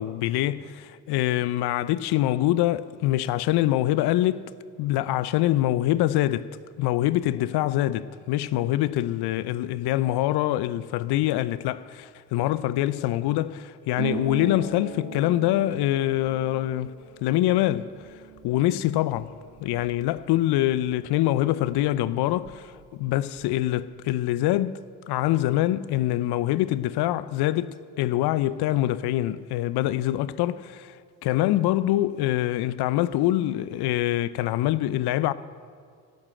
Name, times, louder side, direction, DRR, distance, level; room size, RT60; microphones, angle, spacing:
voice 1, 0.0-4.5 4.8-6.5 6.8-16.9 17.2-17.9 18.4-19.3 19.6-24.8 25.1-31.0 31.2-35.3, left 14 dB, 60° left, 0.6 m, -24 dB
Harp, 13.9-21.4 21.7-22.8 23.1-23.7, right 6 dB, 75° right, 2.0 m, -40 dB
16.0 x 7.8 x 7.7 m
hypercardioid pair, 55°, 44 cm